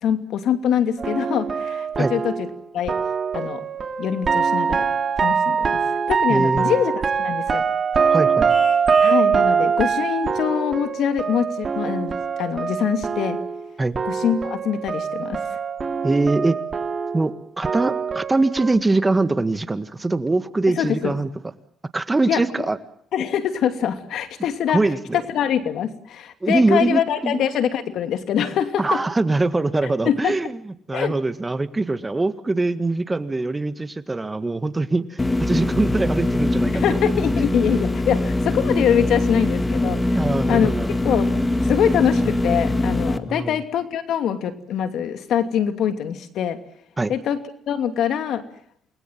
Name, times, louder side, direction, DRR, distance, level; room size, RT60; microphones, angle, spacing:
voice 1, 0.0-2.5 2.7-3.0 3.3-3.6 4.0-4.9 5.2-5.8 6.1-7.6 8.0-8.1 9.0-12.1 12.4-13.4 14.0-15.4 20.8-21.1 22.3-22.4 23.1-24.8 25.3-29.0 30.0-30.5 30.9-31.1 36.7-40.7 41.0-41.4 41.6-46.6 47.1-47.4 47.7-48.4, left 9 dB, 75° left, 8 dB, 2.7 m, -24 dB
sound 1, 1.0-13.7 13.9-18.8, right 6 dB, 40° right, 2.4 m, -23 dB
voice 2, 6.3-6.8 8.1-8.5 13.8-13.9 16.0-16.6 17.1-21.3 21.9-22.8 24.7-25.2 26.4-27.4 28.8-37.0 40.1-41.0 43.3-43.6 47.0-47.1, right 2 dB, 20° right, 11 dB, 1.8 m, -23 dB
Vehicle horn car horn honking, 8.5-9.3, left 5 dB, 35° left, 4.1 m, -38 dB
sound 2, 35.2-43.2, left 2 dB, 20° left, 1.9 m, -22 dB
28.5 x 21.0 x 7.6 m, 0.66 s
cardioid pair, 90°, 0 cm